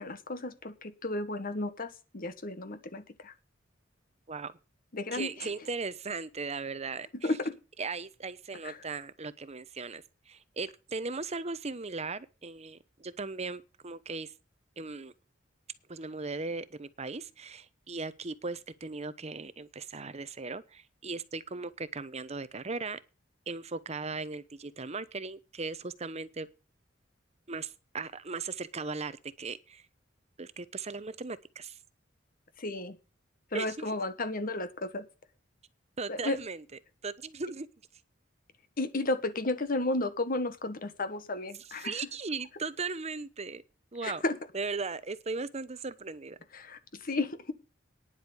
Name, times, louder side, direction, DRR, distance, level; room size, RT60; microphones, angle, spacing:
voice 1, 0.0-3.3 4.9-5.5 7.2-7.5 8.6-8.8 32.6-33.0 33.5-35.1 36.1-36.4 38.8-41.9 44.0-44.4 46.5-47.5, left 2 dB, 45° left, 1.5 m, -33 dB
voice 2, 5.1-7.3 7.8-14.3 14.8-15.1 15.9-23.0 23.5-26.5 27.5-29.8 30.4-31.8 33.5-33.9 36.0-36.6 37.0-37.7 41.8-43.6 43.9-44.2 44.5-46.4, right 4 dB, 35° right, 0.9 m, -38 dB
10.0 x 7.9 x 7.0 m
head